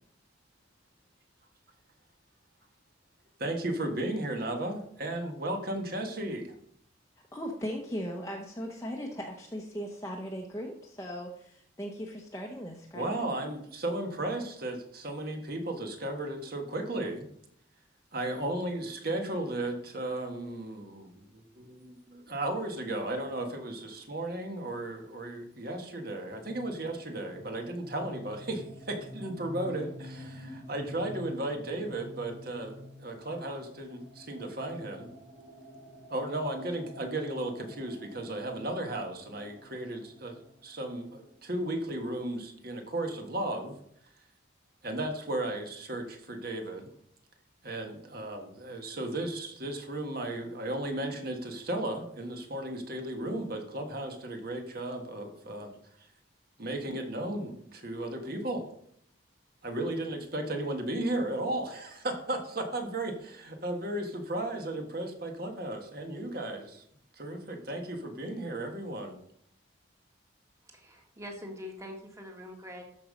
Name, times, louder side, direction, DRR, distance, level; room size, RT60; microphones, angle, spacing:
voice 1, 3.4-6.5 12.9-17.2 18.1-35.1 36.1-43.7 44.8-46.9 47.6-55.7 56.6-58.7 59.6-66.8 67.2-69.2, right 1 dB, 50° right, 4 dB, 1.6 m, -35 dB
voice 2, 7.3-13.1, equal, 15° left, 0 dB, 0.9 m, -38 dB
sound 1, 26.1-41.7, left 1 dB, 90° right, 4.2 m, -48 dB
voice 3, 70.6-72.8, left 1 dB, 15° right, 2 dB, 1.7 m, -44 dB
13.0 x 5.4 x 5.2 m, 0.69 s
head